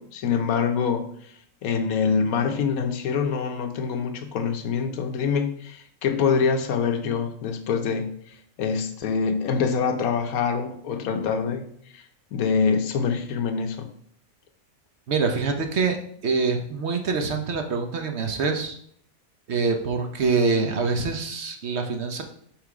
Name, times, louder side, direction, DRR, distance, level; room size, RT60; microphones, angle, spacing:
voice 1, 0.0-1.3 1.6-11.6 11.9-12.0 12.3-13.9, left 6 dB, 85° left, 7 dB, 1.2 m, -25 dB
voice 2, 15.1-16.0 16.2-18.8 19.5-22.2, right 4 dB, 55° right, 5 dB, 1.0 m, -25 dB
6.0 x 3.7 x 4.8 m, 0.64 s
omnidirectional pair, 1.5 m